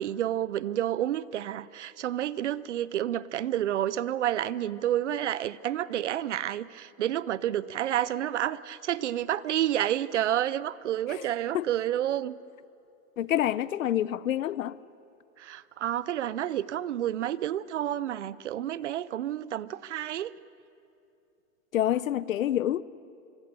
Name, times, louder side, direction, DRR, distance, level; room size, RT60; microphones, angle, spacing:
voice 1, 0.0-12.4 15.4-20.3, right 11 dB, 55° right, 0.7 m, -30 dB
voice 2, 13.2-14.7 21.7-22.8, left 12 dB, 70° left, 0.8 m, -27 dB
26.0 x 23.0 x 6.9 m
hypercardioid pair, 175°, 41 cm